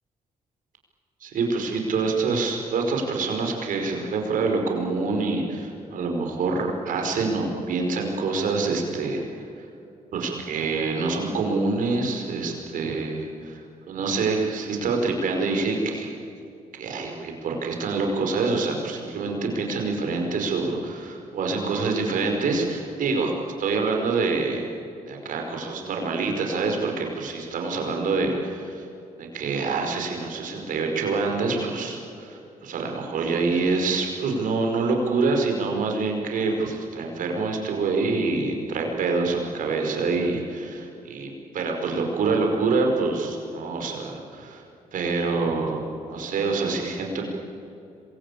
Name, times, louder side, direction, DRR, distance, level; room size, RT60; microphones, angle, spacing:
voice 1, 1.2-9.2 10.1-16.1 16.8-23.3 23.6-24.7 25.1-28.9 29.2-44.6 44.9-47.3, right 3 dB, 75° right, 2 dB, 5.4 m, -26 dB
26.5 x 22.5 x 8.7 m, 2.7 s
cardioid pair, 70°, 14 cm